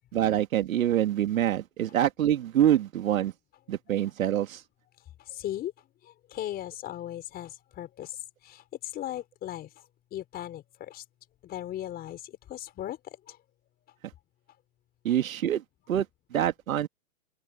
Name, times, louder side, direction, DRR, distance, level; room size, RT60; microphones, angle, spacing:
voice 1, 0.1-3.3 3.7-4.6 15.0-15.6 15.9-16.1 16.3-16.9, right 11 dB, 60° right, 2.6 m, -25 dB
voice 2, 5.3-5.7 6.0-8.2 8.4-9.7 10.1-11.0 11.4-13.0 13.3-13.4, left 12 dB, 20° left, 5.3 m, -37 dB
open air
hypercardioid pair, 145°, 46 cm